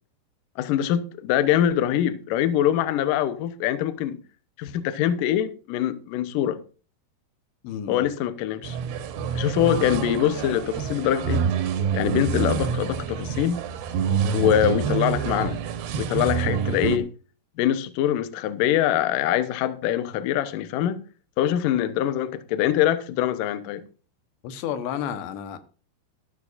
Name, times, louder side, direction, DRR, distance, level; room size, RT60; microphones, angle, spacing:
voice 1, 0.6-4.2 4.6-6.6 7.9-8.8 9.3-11.4 11.9-13.6 14.3-15.6 16.0-17.1 17.6-21.0 21.4-23.8, left 11 dB, 75° left, 2.1 m, -24 dB
voice 2, 7.6-8.1 24.4-25.6, left 9 dB, 90° left, 3.5 m, -31 dB
sound 1, 8.6-17.0, right 7 dB, 75° right, 3.2 m, -27 dB
13.5 x 13.0 x 2.6 m
omnidirectional pair, 5.0 m